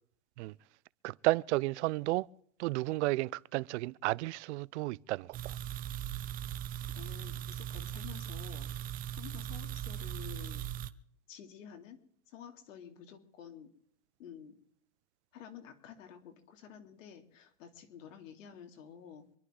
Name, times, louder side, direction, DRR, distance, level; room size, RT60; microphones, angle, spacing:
voice 1, 1.0-2.3 2.6-5.6, right 20 dB, 65° right, 0.6 m, -32 dB
sound 1, 5.3-10.9, right 11 dB, 20° right, 0.6 m, -39 dB
voice 2, 6.9-8.7 9.1-10.7 11.3-12.0 12.3-13.7 14.2-14.6 15.3-19.3, left 8 dB, 80° left, 3.0 m, -50 dB
26.0 x 11.5 x 3.8 m
supercardioid pair, 140°, 38 cm